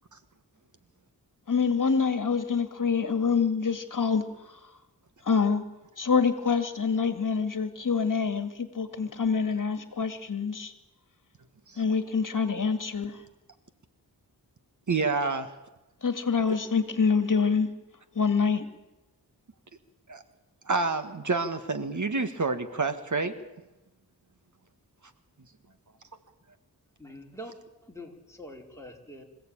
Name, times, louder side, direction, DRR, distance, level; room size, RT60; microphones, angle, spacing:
voice 1, 1.5-4.6 5.2-5.6 6.0-10.7 11.8-13.2 16.0-17.7 18.2-18.7, left 5 dB, 55° left, 9 dB, 1.9 m, -26 dB
voice 2, 14.9-15.5 20.1-20.2 20.7-23.3, right 3 dB, 50° right, 9 dB, 1.7 m, -28 dB
voice 3, 27.0-27.5 27.8-29.2, equal, 5° left, 0 dB, 4.3 m, -44 dB
26.0 x 16.0 x 8.8 m, 1.0 s
wide cardioid pair, 80°, 38 cm